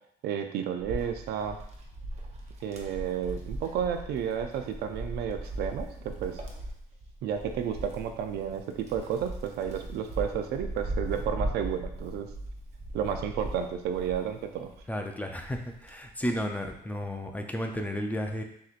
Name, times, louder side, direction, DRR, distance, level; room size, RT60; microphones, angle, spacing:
voice 1, 0.2-1.6 2.6-6.4 7.2-12.3 12.9-14.7, right 8 dB, 75° right, 6 dB, 0.5 m, -32 dB
Wind, 0.8-14.9 15.3-16.8, right 1 dB, 40° right, 0.8 m, -39 dB
voice 2, 14.9-18.4, equal, 10° left, 3 dB, 0.5 m, -33 dB
6.3 x 3.0 x 2.5 m, 0.72 s
cardioid pair, 110°, 17 cm